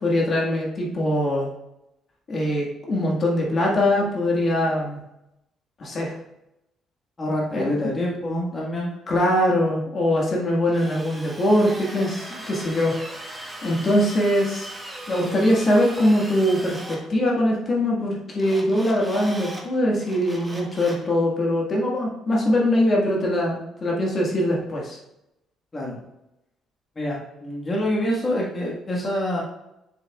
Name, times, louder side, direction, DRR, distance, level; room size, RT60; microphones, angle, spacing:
voice 1, 0.0-1.5 2.3-5.0 5.8-6.2 7.5-7.7 9.1-14.7 15.1-25.0, left 1 dB, 45° left, -2 dB, 1.7 m, -22 dB
voice 2, 7.2-8.9 25.7-26.0 26.9-29.4, left 1 dB, 25° left, -4 dB, 1.5 m, -26 dB
Drill, 10.7-17.0 18.4-19.6 20.0-21.1, right 1 dB, 10° right, 1.4 m, -38 dB
6.9 x 6.7 x 2.4 m, 0.89 s
cardioid pair, 100°, 0 cm